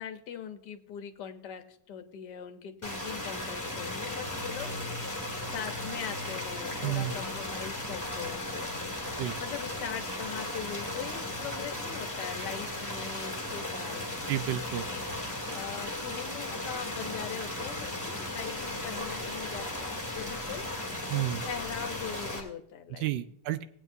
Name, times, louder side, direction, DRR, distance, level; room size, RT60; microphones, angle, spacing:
voice 1, 0.0-4.7 5.5-8.7 9.4-14.0 14.8-15.0 15.5-20.6 21.4-23.1, left 8 dB, 60° left, 6 dB, 1.4 m, -41 dB
sound 1, 2.8-22.4, left 1 dB, 10° left, 1.7 m, -36 dB
sound 2, 4.0-13.0 13.3-13.4, equal, 25° right, 5.2 m, -50 dB
voice 2, 6.8-7.2 9.2-9.4 14.3-14.9 21.1-21.4 23.0-23.6, right 13 dB, 70° right, 12 dB, 1.2 m, -31 dB
18.5 x 8.8 x 2.7 m, 0.67 s
omnidirectional pair, 2.2 m